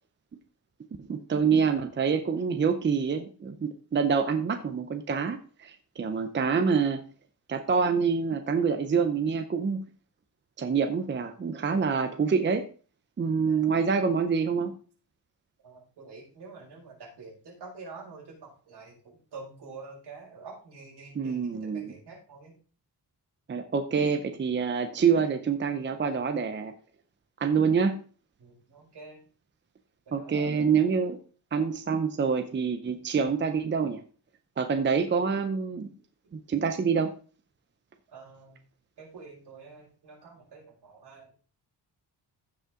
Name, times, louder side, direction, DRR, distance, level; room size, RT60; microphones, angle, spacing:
voice 1, 1.1-7.0 7.5-9.8 10.6-12.7 13.2-14.7 21.1-21.9 23.5-26.7 27.4-28.0 30.1-31.2 31.5-34.0 34.6-35.9 36.3-37.1, right 6 dB, 30° right, 8 dB, 0.7 m, -26 dB
voice 2, 13.2-13.7 15.6-22.6 28.4-29.2 30.1-30.7 36.2-36.3 38.1-38.6 39.0-41.3, right 4 dB, 75° right, -3 dB, 5.1 m, -47 dB
15.0 x 5.5 x 3.7 m, 0.39 s
wide cardioid pair, 170°, 41 cm